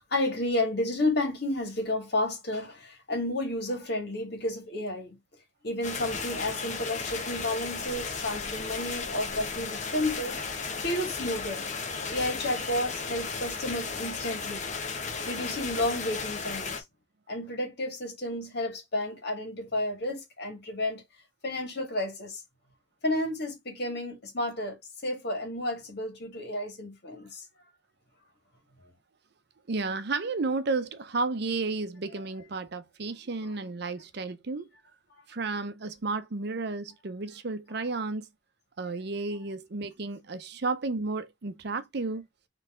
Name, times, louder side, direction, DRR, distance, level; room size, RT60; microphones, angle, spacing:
voice 1, 0.0-5.2 5.6-10.4 10.8-11.7 12.1-14.7 15.3-16.8 17.3-21.0 21.4-22.4 23.0-24.8 25.0-27.4 35.1-35.2, left 1 dB, 60° left, 2.0 m, -31 dB
sound 1, 5.8-16.8, left 5 dB, 40° left, 1.0 m, -35 dB
voice 2, 29.7-34.7 35.3-38.3 38.8-42.2, right 3 dB, 60° right, 0.6 m, -32 dB
4.2 x 3.2 x 3.7 m
head